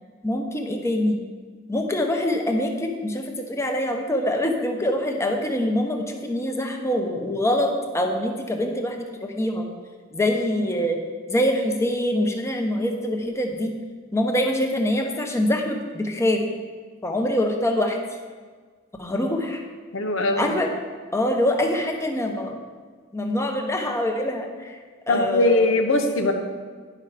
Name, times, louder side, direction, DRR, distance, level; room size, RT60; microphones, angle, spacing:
voice 1, 0.2-1.2 1.7-9.7 10.1-11.0 11.3-13.7 14.1-16.4 17.0-18.0 19.0-19.6 20.4-20.7 21.1-22.6 23.1-24.7 25.1-25.7, left 1 dB, 15° left, 3 dB, 0.9 m, -24 dB
voice 2, 19.9-20.5 25.1-26.3, left 2 dB, 90° left, 4 dB, 0.9 m, -21 dB
10.0 x 5.6 x 5.0 m, 1.5 s
head